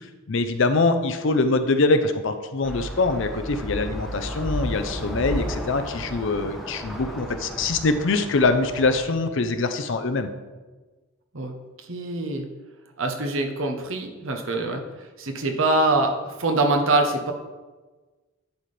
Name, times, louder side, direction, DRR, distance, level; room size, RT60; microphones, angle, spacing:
voice 1, 0.3-10.3, left 3 dB, 60° left, 9 dB, 0.5 m, -23 dB
sound 1, 2.6-9.1, equal, ahead, 0.7 m, -33 dB
voice 2, 11.9-12.5 13.0-17.3, right 2 dB, 65° right, 4 dB, 0.9 m, -24 dB
11.0 x 4.2 x 3.3 m, 1.3 s
head